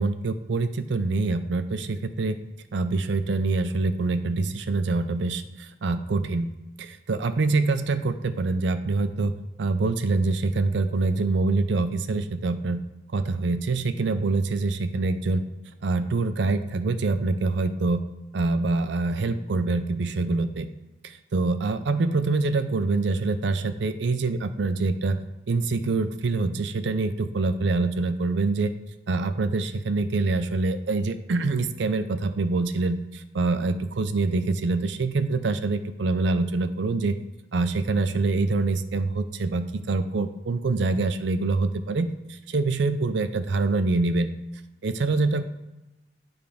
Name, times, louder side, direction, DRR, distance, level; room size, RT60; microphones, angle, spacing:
voice 1, 0.0-2.4 2.7-6.5 6.8-12.8 13.1-15.4 15.8-18.0 18.3-20.7 21.0-25.2 25.5-28.7 29.1-37.2 37.5-44.3 44.8-45.4, right 3 dB, 75° right, 10 dB, 0.5 m, -25 dB
9.1 x 3.5 x 5.0 m, 0.99 s
head